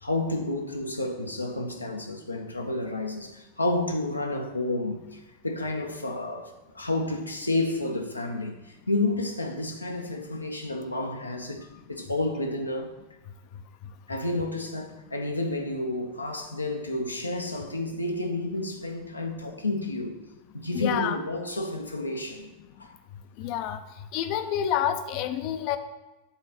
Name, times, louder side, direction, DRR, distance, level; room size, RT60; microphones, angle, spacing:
voice 1, 0.0-12.9 14.1-20.2 20.5-22.5 22.8-23.0, left 2 dB, 85° left, 0.7 m, -30 dB
voice 2, 20.7-21.2 23.4-23.8 24.1-25.8, left 10 dB, 40° left, 0.6 m, -28 dB
8.2 x 4.0 x 5.9 m
figure-of-eight pair, 90°, 0 cm